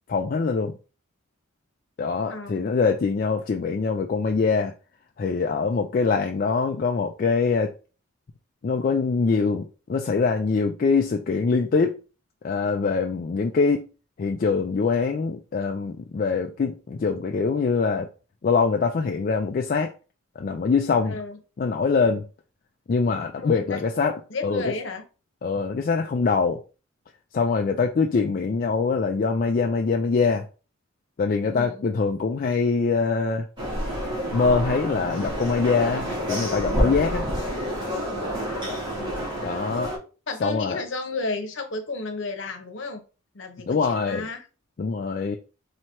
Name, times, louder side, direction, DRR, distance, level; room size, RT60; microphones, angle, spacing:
voice 1, 0.1-0.8 2.0-4.7 5.2-7.7 8.6-12.0 12.4-13.9 14.2-18.1 18.4-19.9 20.4-21.2 21.6-22.3 22.9-24.7 25.4-26.6 27.3-30.5 31.2-33.5 34.3-37.3 39.4-39.9 40.4-40.8 43.7-44.3 44.8-45.4, left 4 dB, 40° left, 0.3 m, -23 dB
voice 2, 2.3-2.8 21.0-21.4 23.4-23.8 24.3-25.0 31.5-31.8 39.0-39.3 40.3-43.0 43.3-44.5, left 3 dB, 60° left, 0.8 m, -33 dB
sound 1, 33.6-40.0, equal, 20° right, 1.4 m, -28 dB
4.4 x 2.8 x 3.0 m
head